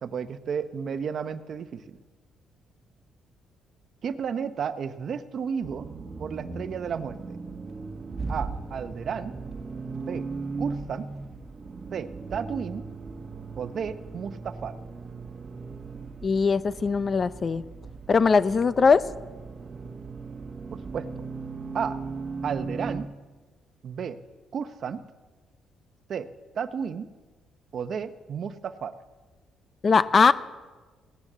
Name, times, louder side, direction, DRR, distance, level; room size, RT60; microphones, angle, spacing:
voice 1, 0.0-2.0 4.0-5.9 6.2-7.2 8.3-9.3 9.9-10.3 10.6-11.1 11.9-12.8 13.6-14.8 20.7-21.1 21.7-22.0 22.4-23.1 23.8-24.2 24.5-25.0 26.1-26.3 26.5-27.1 27.7-28.9, right 7 dB, 55° right, 12 dB, 0.8 m, -32 dB
Accelerating revving vroom, 5.6-23.1, right 4 dB, 35° right, 1.1 m, -38 dB
voice 2, 16.2-17.6 18.1-19.0 29.8-30.3, left 5 dB, 40° left, 15 dB, 0.6 m, -20 dB
17.0 x 9.9 x 7.5 m, 1.3 s
cardioid pair, 90°, 0 cm